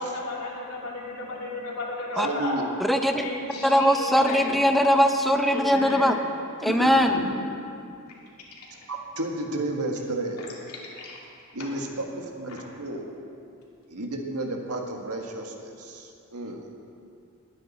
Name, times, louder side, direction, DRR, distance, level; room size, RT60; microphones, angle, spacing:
voice 1, 0.0-2.6 3.2-4.7 5.5-6.2 6.6-7.4 8.6-8.7 10.7-11.2 11.6-11.7, left 1 dB, 75° left, -3 dB, 2.8 m, -33 dB
voice 2, 2.1-2.6 8.9-10.4 11.5-13.3 13.9-16.7, right 2 dB, 90° right, 2 dB, 1.6 m, -32 dB
voice 3, 2.9-3.3 3.6-6.2 6.6-7.2, equal, ahead, 5 dB, 0.5 m, -21 dB
20.5 x 9.4 x 4.2 m, 2.5 s
head